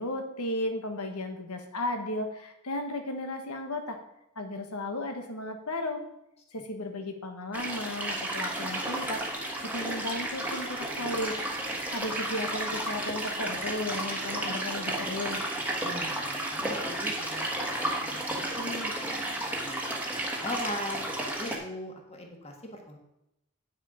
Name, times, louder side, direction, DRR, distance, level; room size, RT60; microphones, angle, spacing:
voice 1, 0.0-4.0 4.3-6.0 6.5-11.4 11.7-15.4, left 1 dB, 85° left, 6 dB, 1.3 m, -35 dB
sound 1, 7.5-21.6, right 1 dB, 5° right, 1.3 m, -32 dB
voice 2, 15.8-17.5 17.8-18.9 19.6-19.8 20.2-23.0, left 1 dB, 25° left, 2 dB, 1.5 m, -39 dB
9.1 x 6.5 x 5.0 m, 0.85 s
head